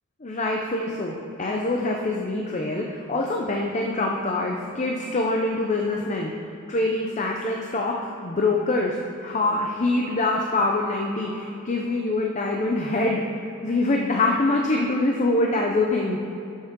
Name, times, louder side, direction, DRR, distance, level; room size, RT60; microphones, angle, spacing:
voice 1, 0.2-6.3 6.7-13.2 13.6-16.2, left 2 dB, 35° left, 0 dB, 0.6 m, -24 dB
12.0 x 7.3 x 3.7 m, 2.8 s
head